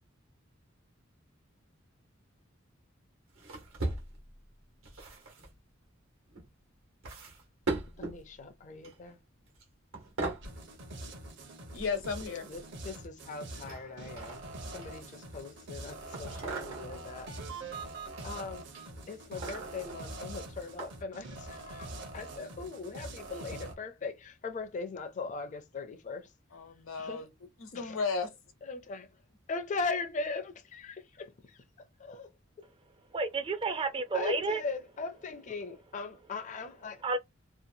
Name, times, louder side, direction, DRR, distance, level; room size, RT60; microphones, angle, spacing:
sound 1, 3.4-4.4 4.8-5.5 6.3-6.5 7.0-8.2 8.8-9.1 9.5-9.6 9.9-10.5 11.7-12.6 13.6-15.2 16.1-17.0 17.7-18.3 18.7-20.0 20.8-20.9 21.5-21.6, right 3 dB, 85° right, 1.2 m, -39 dB
voice 1, 8.0-9.2 12.5-14.4 14.7-17.3 18.2-18.7 19.1-26.3 27.0-27.3 27.7-28.0 28.6-29.1 29.5-31.6 32.0-32.3 34.1-37.0, left 4 dB, 40° left, 0.4 m, -39 dB
sound 2, 10.4-23.8, right 2 dB, 60° right, 0.8 m, -44 dB
voice 2, 11.7-12.5 26.5-27.3 27.6-28.3, left 4 dB, 80° left, 0.9 m, -34 dB
voice 3, 33.1-34.6 37.0-37.2, right 3 dB, 25° right, 0.4 m, -31 dB
2.8 x 2.2 x 2.6 m
head